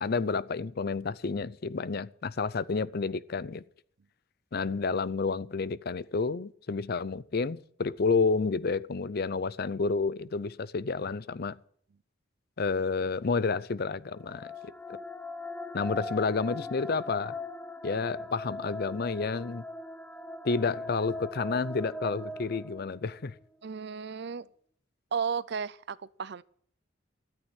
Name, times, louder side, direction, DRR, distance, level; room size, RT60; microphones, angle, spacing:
voice 1, 0.0-3.6 4.5-11.6 12.6-14.5 15.7-17.4 17.8-19.6 20.4-23.3, left 4 dB, 50° left, 0.5 m, -30 dB
sound 1, 14.1-23.3, left 2 dB, 5° left, 0.6 m, -40 dB
voice 2, 23.6-24.5 25.1-26.4, right 6 dB, 55° right, 0.5 m, -34 dB
13.0 x 9.0 x 8.9 m
head